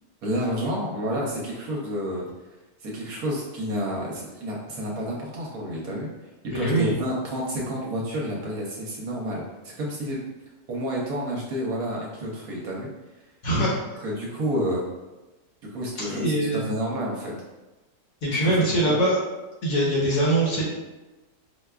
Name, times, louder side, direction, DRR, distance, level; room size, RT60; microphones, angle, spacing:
voice 1, 0.2-2.2 2.8-6.1 6.4-10.2 10.7-12.9 14.0-14.8 15.6-17.3 18.4-19.0, equal, 70° right, -3 dB, 1.0 m, -30 dB
voice 2, 6.5-6.9 13.4-13.8 16.1-16.7 18.2-19.2 19.6-20.6, right 1 dB, 60° left, -5 dB, 1.1 m, -22 dB
4.7 x 2.2 x 2.3 m, 1.1 s
omnidirectional pair, 1.8 m